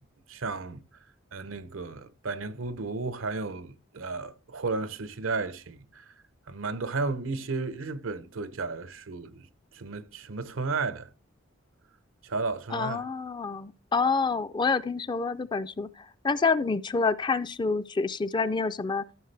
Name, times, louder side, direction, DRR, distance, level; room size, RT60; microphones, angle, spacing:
voice 1, 0.3-0.8 1.3-6.1 6.5-9.5 9.7-11.1 12.2-13.0, right 3 dB, 85° right, 0.8 m, -33 dB
voice 2, 12.7-19.0, left 4 dB, 25° left, 0.4 m, -28 dB
14.0 x 5.9 x 3.3 m
head